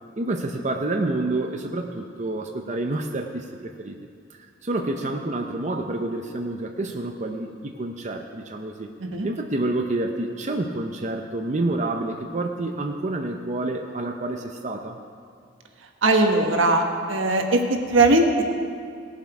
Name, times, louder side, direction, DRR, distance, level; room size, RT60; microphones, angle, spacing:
voice 1, 0.2-4.0 4.6-8.9 9.2-15.0, right 2 dB, 35° right, 3 dB, 0.6 m, -28 dB
voice 2, 16.0-17.6 17.9-18.4, right 2 dB, 80° right, 3 dB, 1.2 m, -19 dB
18.0 x 7.3 x 4.8 m, 2.2 s
head